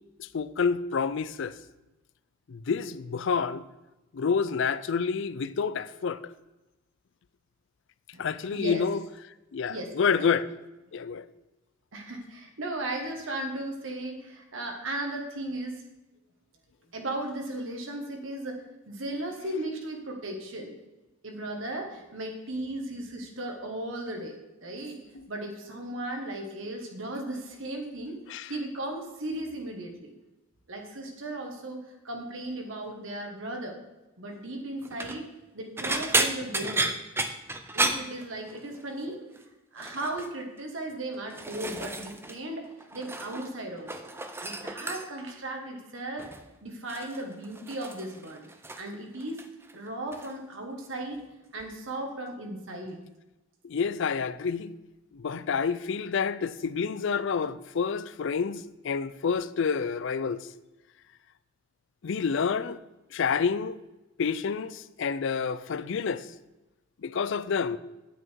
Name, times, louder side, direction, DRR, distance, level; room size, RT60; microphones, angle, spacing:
voice 1, 0.2-1.6 2.5-3.6 4.1-6.2 8.2-9.0 9.5-10.5 10.9-11.2 28.3-28.5 53.6-54.7 55.1-60.5 62.0-62.8 63.1-63.7 64.2-66.3 67.0-67.8, left 6 dB, 60° left, 0.4 m, -28 dB
voice 2, 8.5-8.8 9.7-9.9 11.9-15.8 16.9-18.6 18.9-20.7 21.2-25.0 25.3-28.2 28.5-30.1 30.7-33.8 34.2-35.2 35.5-36.9 37.7-39.2 39.7-44.1 44.4-46.3 46.6-48.5 48.8-49.4 49.7-51.2 51.5-53.0, right 1 dB, 65° right, 1.4 m, -36 dB
sound 1, 34.8-35.2 35.8-38.8 39.1-39.4 39.8-40.3 41.0-42.4 42.7-43.5 43.8-45.3 46.2-46.5 46.9-48.9 49.2-49.7 50.1-50.3 51.6-51.7, right 2 dB, 10° right, 0.5 m, -32 dB
9.2 x 8.5 x 4.5 m
head